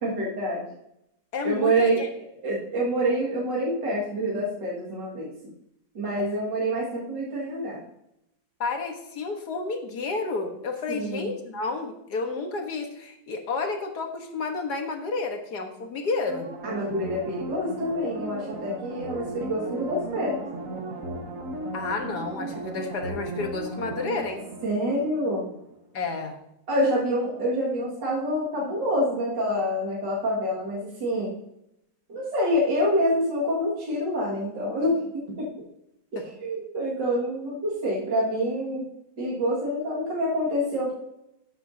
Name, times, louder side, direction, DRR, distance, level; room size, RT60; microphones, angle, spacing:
voice 1, 0.0-0.7 1.4-2.0 2.4-5.3 5.9-7.8 10.9-11.3 16.6-20.5 24.6-25.5 26.7-31.3 32.1-35.5 36.1-38.9 39.2-40.9, equal, 70° right, -7 dB, 2.7 m, -27 dB
voice 2, 1.3-2.1 8.6-16.5 21.7-24.4 25.9-26.4 36.2-36.3, left 4 dB, 60° left, 4 dB, 1.8 m, -31 dB
sound 1, 16.3-25.7 26.0-26.1, right 1 dB, 50° right, 1.4 m, -36 dB
12.5 x 8.3 x 2.8 m, 0.81 s
omnidirectional pair, 2.0 m